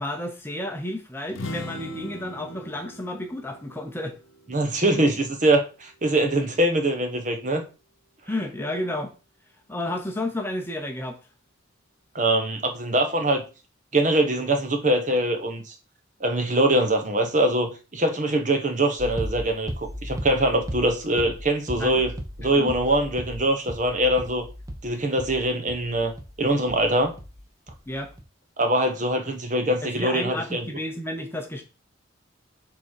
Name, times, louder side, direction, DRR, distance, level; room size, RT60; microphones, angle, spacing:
voice 1, 0.0-4.2 8.3-9.1 9.7-11.2 21.8-22.0 22.4-22.8 27.9-28.1 29.8-31.6, left 1 dB, 10° left, 0.8 m, -31 dB
sound 1, 1.3-5.0, left 1 dB, 85° left, 1.0 m, -40 dB
voice 2, 4.5-7.6 12.1-13.4 13.9-15.6 16.2-22.1 22.4-24.4 24.8-26.1 26.4-27.1 28.6-30.6, right 1 dB, 40° right, 1.1 m, -23 dB
sound 2, 19.0-27.4 27.7-28.2, equal, 15° right, 1.1 m, -36 dB
6.9 x 3.8 x 4.8 m
head